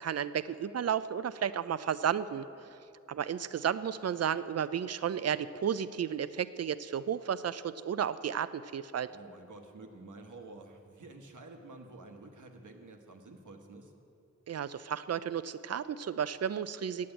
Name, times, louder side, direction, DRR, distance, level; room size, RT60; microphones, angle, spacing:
voice 1, 0.0-2.8 3.1-9.1 14.5-17.1, right 8 dB, 55° right, 15 dB, 0.4 m, -33 dB
voice 2, 9.1-13.9, right 2 dB, 90° right, 3 dB, 1.2 m, -50 dB
9.4 x 8.4 x 8.8 m, 2.8 s
wide cardioid pair, 110°, 30 cm